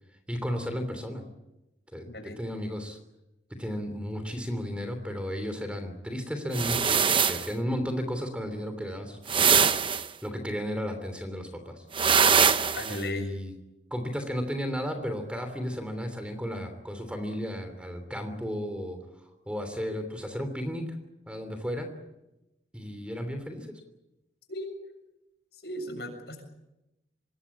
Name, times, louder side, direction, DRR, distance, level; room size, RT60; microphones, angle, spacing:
voice 1, 0.3-1.3 1.9-2.1 2.4-3.0 3.6-9.7 10.2-11.8 12.9-13.5 13.9-20.8 21.3-21.9 22.7-23.7, equal, 5° right, 7 dB, 3.1 m, -34 dB
voice 2, 2.1-2.4 12.7-13.3 24.5-24.7 25.6-26.4, left 1 dB, 70° left, 5 dB, 7.1 m, -36 dB
sound 1, 6.5-7.5 9.3-10.1 11.9-13.0, right 6 dB, 30° right, 0.8 m, -22 dB
25.0 x 20.0 x 8.6 m, 0.94 s
head